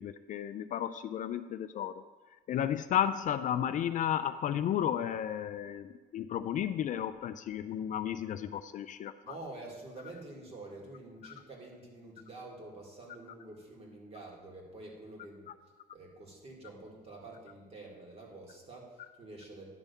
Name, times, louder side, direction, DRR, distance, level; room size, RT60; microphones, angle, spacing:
voice 1, 0.0-2.0 2.5-9.3 11.2-11.3, left 10 dB, 50° left, 11 dB, 0.4 m, -33 dB
voice 2, 9.2-15.5 15.9-19.7, right 2 dB, 35° right, -1 dB, 2.0 m, -48 dB
10.0 x 3.5 x 6.7 m, 1.4 s
cardioid pair, 110°, 17 cm